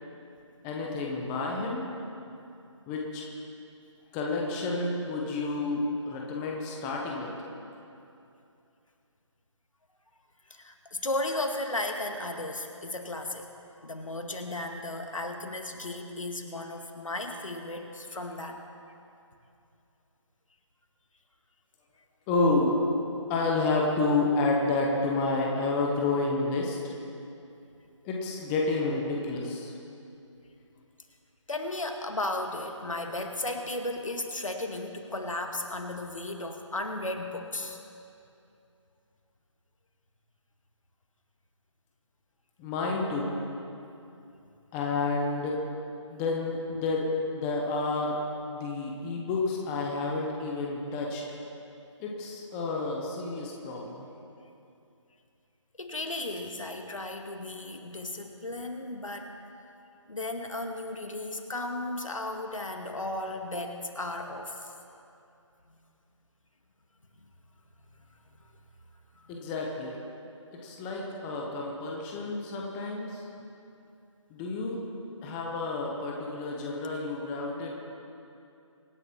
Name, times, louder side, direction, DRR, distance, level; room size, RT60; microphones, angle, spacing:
voice 1, 0.6-1.9 2.9-3.2 4.1-7.4 22.3-22.8 23.3-26.8 28.0-29.7 42.6-43.3 44.7-45.6 46.1-47.1 47.3-48.2 48.4-51.2 52.0-54.1 69.3-70.0 70.5-73.2 74.3-74.8 75.2-77.8, left 3 dB, 5° left, -1 dB, 0.7 m, -30 dB
voice 2, 10.5-13.5 13.8-18.6 31.5-37.8 55.8-59.3 60.1-64.7 69.2-69.3, left 2 dB, 80° left, 4 dB, 2.2 m, -35 dB
25.0 x 10.5 x 4.4 m, 2.7 s
figure-of-eight pair, 165°, 16 cm